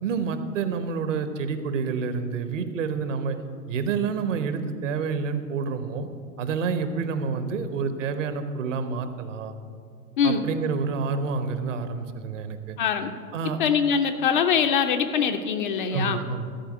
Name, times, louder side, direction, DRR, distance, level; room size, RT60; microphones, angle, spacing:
voice 1, 0.0-3.4 3.7-6.1 6.4-9.5 10.2-12.8 13.3-13.6 15.9-16.5, right 5 dB, 55° right, 10 dB, 1.0 m, -28 dB
voice 2, 12.8-13.1 13.6-16.2, left 7 dB, 35° left, 7 dB, 0.5 m, -23 dB
13.0 x 4.8 x 7.6 m, 2.3 s
figure-of-eight pair, 105°, 46 cm